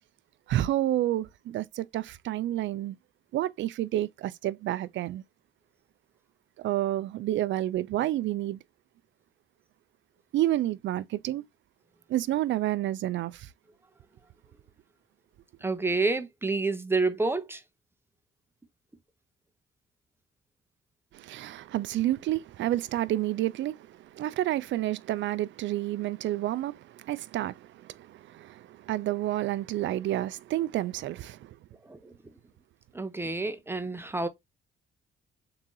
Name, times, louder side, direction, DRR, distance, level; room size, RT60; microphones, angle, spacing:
voice 1, 0.5-3.0 3.3-5.2 6.6-8.6 10.3-11.4 12.1-13.5 21.1-31.6, right 14 dB, 70° right, 0.4 m, -30 dB
voice 2, 15.6-17.6 31.9-32.1 32.9-34.3, right 3 dB, 10° right, 0.8 m, -28 dB
3.8 x 2.8 x 3.8 m
cardioid pair, 90°, 20 cm